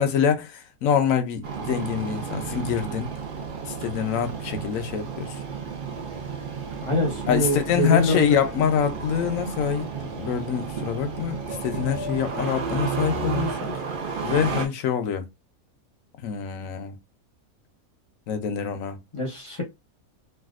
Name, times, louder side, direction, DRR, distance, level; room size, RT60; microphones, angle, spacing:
voice 1, 0.0-3.1 3.6-5.4 7.3-13.8 14.2-15.3 16.2-17.0 18.3-19.0, left 8 dB, 70° left, 1.0 m, -25 dB
Engine starting, 1.4-14.7, right 5 dB, 50° right, 0.7 m, -32 dB
voice 2, 6.8-8.2 19.1-19.6, left 1 dB, 25° left, 0.8 m, -24 dB
3.3 x 2.5 x 2.4 m
omnidirectional pair, 1.5 m